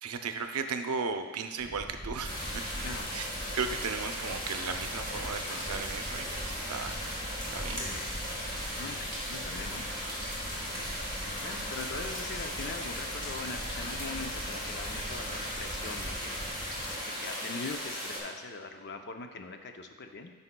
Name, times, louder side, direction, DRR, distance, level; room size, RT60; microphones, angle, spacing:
voice 1, 0.0-2.8 3.1-3.3 3.5-7.0 7.5-7.9 10.7-11.0, right 5 dB, 80° right, 6 dB, 0.6 m, -36 dB
sound 1, 1.6-17.0, equal, 5° right, 1.1 m, -43 dB
sound 2, 2.2-18.2, equal, 20° left, 2.0 m, -37 dB
voice 2, 2.8-3.1 7.8-8.1 8.4-8.5 8.7-9.9 10.5-10.9 11.4-16.4 17.0-20.3, left 3 dB, 50° left, 5 dB, 0.5 m, -42 dB
12.5 x 5.5 x 2.2 m, 1.3 s
head